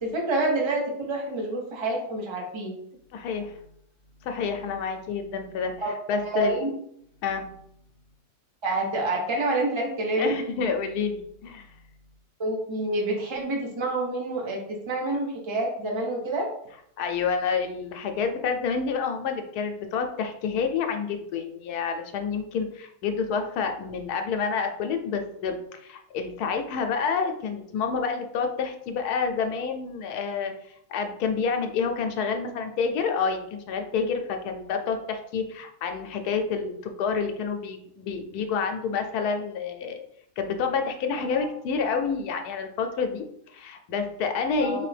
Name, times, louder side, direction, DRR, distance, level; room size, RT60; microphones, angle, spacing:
voice 1, 0.0-2.7 5.8-6.7 8.6-10.4 12.4-16.5 41.3-41.5 44.6-44.9, right 2 dB, 25° right, 0 dB, 0.7 m, -28 dB
voice 2, 3.1-3.6 4.2-6.6 7.2-7.5 10.2-11.7 17.0-30.5 30.9-40.0 40.4-44.9, left 5 dB, 75° left, 6 dB, 1.1 m, -28 dB
4.1 x 3.3 x 3.3 m, 0.72 s
omnidirectional pair, 1.7 m